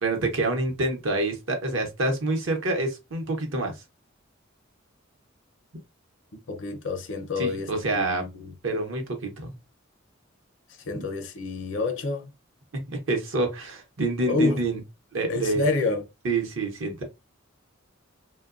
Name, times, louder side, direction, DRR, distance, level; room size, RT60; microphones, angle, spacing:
voice 1, 0.0-3.7 7.4-8.2 8.6-9.5 10.9-11.1 12.9-14.8 15.1-15.7 16.2-17.0, right 2 dB, 70° right, 0.8 m, -27 dB
voice 2, 6.5-8.5 10.9-12.3 14.3-14.6 15.3-16.0, left 3 dB, 65° left, 0.5 m, -28 dB
2.9 x 2.2 x 2.4 m
head